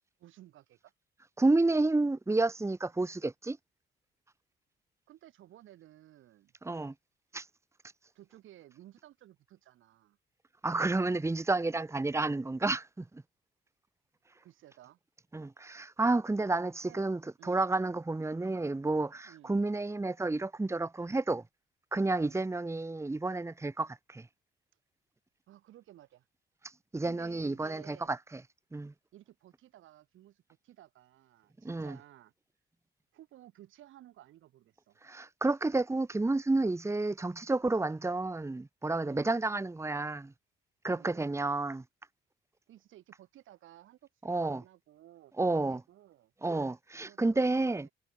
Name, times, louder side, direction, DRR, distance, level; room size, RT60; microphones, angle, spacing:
voice 1, 0.2-0.9 5.1-6.5 8.1-10.2 14.4-15.0 16.8-17.7 19.2-19.6 22.2-22.4 25.5-26.3 27.0-28.1 29.1-32.3 33.1-35.0 39.0-39.4 40.9-41.3 42.7-46.3 47.0-47.9, right 13 dB, 80° right, 5.5 m, -56 dB
voice 2, 1.4-3.6 6.6-6.9 7.3-7.5 10.6-13.1 15.3-21.4 21.9-24.3 26.9-28.4 28.7-28.9 31.6-32.0 35.0-40.3 40.8-41.8 44.2-44.6 45.4-45.8 46.4-47.9, right 2 dB, 15° right, 1.4 m, -30 dB
cardioid pair, 90°, 20 cm